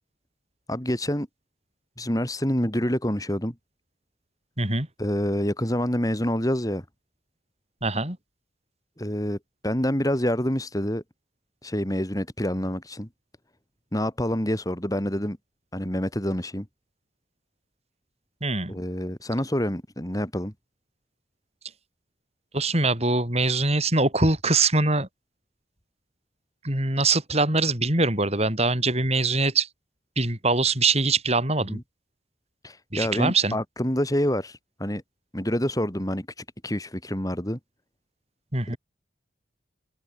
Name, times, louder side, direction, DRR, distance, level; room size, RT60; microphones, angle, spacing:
voice 1, 0.7-1.3 2.0-3.5 5.0-6.8 9.0-9.4 9.6-11.0 11.6-13.1 13.9-15.4 15.7-16.7 18.7-20.5 31.7-31.8 32.6-35.0 35.3-37.6 38.7-38.8, equal, 20° left, 3.5 m, -27 dB
voice 2, 7.8-8.2 18.4-18.7 22.5-25.1 26.6-29.7 30.2-31.8 32.9-33.6 38.5-38.8, right 3 dB, 35° right, 7.3 m, -23 dB
head